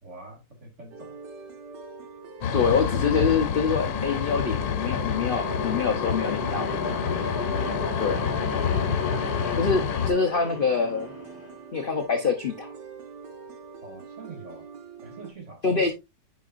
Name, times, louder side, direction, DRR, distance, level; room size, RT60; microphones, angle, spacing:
voice 1, 0.0-1.2 13.8-14.7 15.0-15.8, right 2 dB, 40° right, 2.2 m, -43 dB
sound 1, 0.9-15.3, right 5 dB, 70° right, 1.8 m, -43 dB
sound 2, 2.4-10.1, left 7 dB, 80° left, 1.5 m, -28 dB
voice 2, 2.5-6.7 8.0-8.3 9.6-11.1 11.7-12.7 15.6-15.9, left 5 dB, 60° left, 0.5 m, -25 dB
sound 3, 3.9-11.6, left 3 dB, 30° left, 1.9 m, -33 dB
9.3 x 5.3 x 2.5 m
omnidirectional pair, 2.0 m